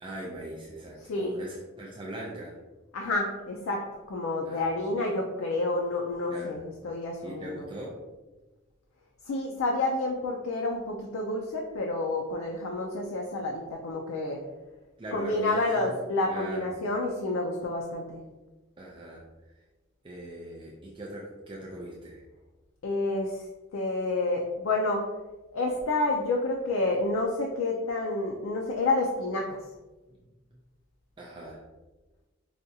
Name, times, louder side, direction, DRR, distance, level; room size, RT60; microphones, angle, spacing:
voice 1, 0.0-2.5 4.4-4.7 6.3-6.6 7.2-8.0 15.0-16.0 16.3-16.6 18.8-19.2 20.0-22.2 31.2-31.6, right 1 dB, 25° right, -3 dB, 0.4 m, -40 dB
voice 2, 1.0-1.3 2.9-7.7 9.2-14.4 15.1-18.2 22.8-23.5 23.7-25.1 25.5-29.6, left 2 dB, 80° left, 0 dB, 0.4 m, -29 dB
4.9 x 2.3 x 2.7 m, 1.2 s
head